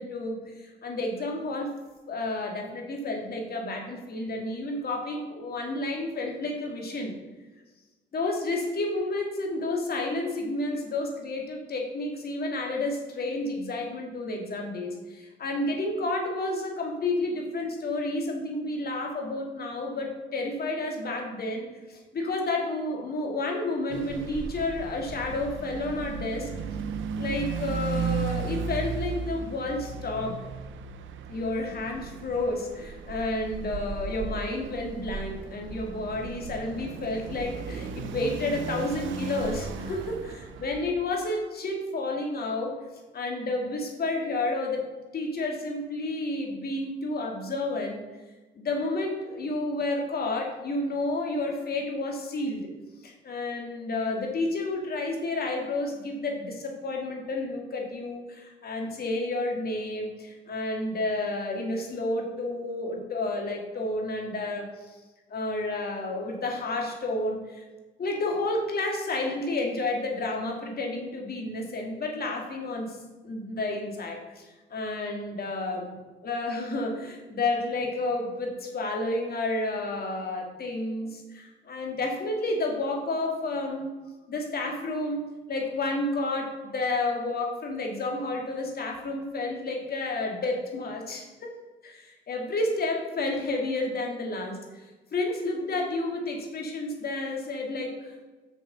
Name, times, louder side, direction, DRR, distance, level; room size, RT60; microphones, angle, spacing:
voice 1, 0.0-1.7 2.1-7.1 8.1-26.5 27.2-30.4 31.3-42.7 43.1-48.0 48.6-52.6 53.0-65.0 65.3-67.6 68.0-73.0 73.2-75.9 76.2-83.9 84.3-91.3 91.8-94.8 95.1-98.1, left 2 dB, 50° left, 1 dB, 2.4 m, -31 dB
sound 1, 23.9-40.9, right 5 dB, 75° right, 0.8 m, -35 dB
7.2 x 6.6 x 5.6 m, 1.2 s
cardioid pair, 90°, 20 cm